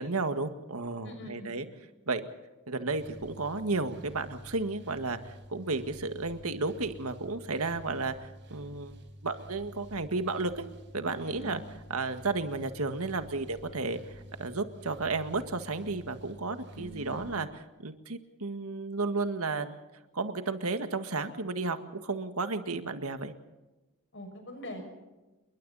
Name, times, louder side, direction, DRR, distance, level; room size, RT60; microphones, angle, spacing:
voice 1, 0.0-1.7 2.1-2.3 2.7-8.1 8.5-9.0 9.2-10.6 10.9-11.6 11.9-19.8 20.1-23.3, right 3 dB, 75° right, 8 dB, 1.8 m, -33 dB
voice 2, 1.0-1.6 11.3-11.6 16.7-17.3 24.1-24.9, equal, 60° left, 6 dB, 6.5 m, -43 dB
sound 1, 2.9-17.4, equal, 55° right, 5.3 m, -49 dB
29.0 x 23.0 x 4.2 m, 1.1 s
head